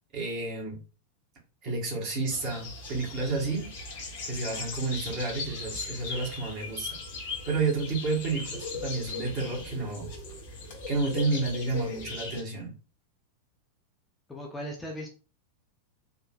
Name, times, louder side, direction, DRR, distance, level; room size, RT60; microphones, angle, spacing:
voice 1, 0.1-0.8 1.6-3.7 4.2-6.9 7.5-10.1 10.9-12.7, right 3 dB, 40° right, -2 dB, 1.5 m, -30 dB
sound 1, 2.3-12.4, left 4 dB, 55° left, 1.1 m, -39 dB
voice 2, 14.3-15.1, equal, 10° left, 1 dB, 0.7 m, -37 dB
3.8 x 2.5 x 2.4 m, 0.34 s
figure-of-eight pair, 90°, 0 cm